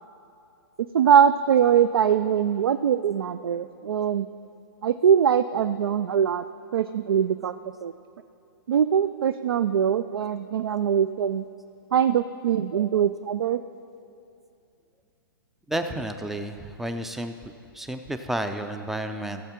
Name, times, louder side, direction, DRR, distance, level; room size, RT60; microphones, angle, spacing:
voice 1, 0.9-4.3 4.8-6.4 6.7-7.6 7.8-7.9 8.7-11.4 11.9-13.6, right 8 dB, 90° right, 11 dB, 0.4 m, -22 dB
voice 2, 15.7-19.4, right 1 dB, ahead, 7 dB, 0.3 m, -31 dB
15.5 x 7.3 x 4.4 m, 2.6 s
hypercardioid pair, 150°, 12 cm